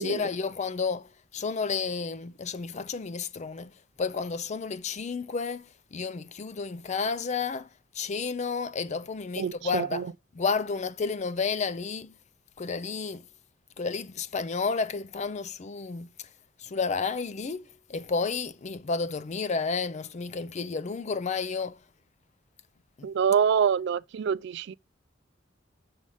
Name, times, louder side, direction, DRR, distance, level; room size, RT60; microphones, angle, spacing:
voice 1, 0.0-3.7 4.0-7.7 7.9-12.1 12.6-13.2 13.8-16.1 16.6-21.7 23.0-23.1, left 5 dB, 40° left, 0.5 m, -31 dB
voice 2, 9.4-10.1 23.0-24.7, right 7 dB, 65° right, 0.3 m, -26 dB
6.3 x 4.9 x 5.4 m
head